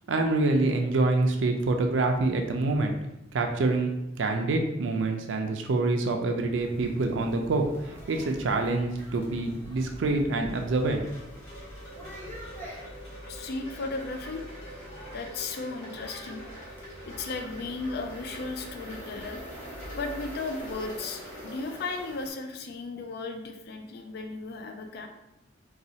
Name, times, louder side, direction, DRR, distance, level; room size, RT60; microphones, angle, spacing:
voice 1, 0.1-2.9 3.3-11.1, right 2 dB, 80° right, 3 dB, 0.4 m, -26 dB
sound 1, 6.6-22.3, equal, 10° left, 1.1 m, -45 dB
Wind chime, 10.2-22.3, equal, 40° left, 1.5 m, -46 dB
voice 2, 13.3-14.4 15.1-16.4 17.1-19.4 19.9-25.1, left 3 dB, 55° left, 5 dB, 0.3 m, -35 dB
4.0 x 2.3 x 2.7 m, 0.89 s
head